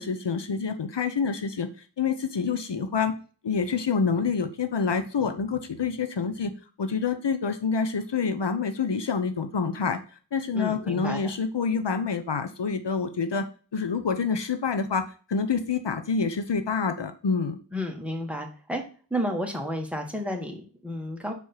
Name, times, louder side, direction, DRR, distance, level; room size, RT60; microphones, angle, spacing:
voice 1, 0.0-1.7 2.0-3.2 3.4-6.5 6.8-10.0 10.3-13.5 13.7-17.6, left 5 dB, 70° left, 8 dB, 0.8 m, -27 dB
voice 2, 10.5-11.2 17.7-18.8 19.1-21.3, equal, 5° right, 2 dB, 1.6 m, -31 dB
5.3 x 4.8 x 4.4 m, 0.38 s
wide cardioid pair, 45°, 44 cm